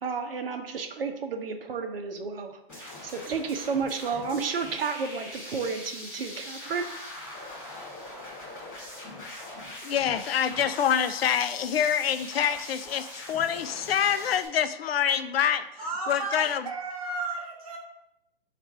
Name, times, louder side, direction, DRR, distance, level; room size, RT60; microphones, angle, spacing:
voice 1, 0.0-6.9, right 5 dB, 70° right, 5 dB, 0.7 m, -32 dB
sound 1, 2.7-14.5, left 1 dB, 5° left, 0.7 m, -42 dB
voice 2, 9.8-15.7 16.1-16.7, left 9 dB, 75° left, 12 dB, 0.4 m, -26 dB
voice 3, 15.8-17.8, right 2 dB, 35° right, 0 dB, 0.9 m, -33 dB
4.2 x 2.5 x 4.7 m, 0.82 s
hypercardioid pair, 175°, 30 cm